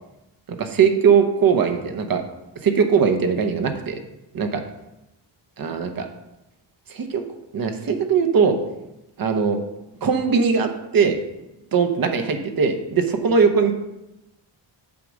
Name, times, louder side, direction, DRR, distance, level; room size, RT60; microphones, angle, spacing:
voice 1, 0.5-2.2 2.6-4.0 4.3-4.6 5.6-6.1 6.9-7.2 7.5-8.6 9.2-9.6 10.0-11.2 11.7-13.7, right 6 dB, 50° right, 6 dB, 1.0 m, -20 dB
7.5 x 4.8 x 6.3 m, 0.94 s
wide cardioid pair, 165°, 45 cm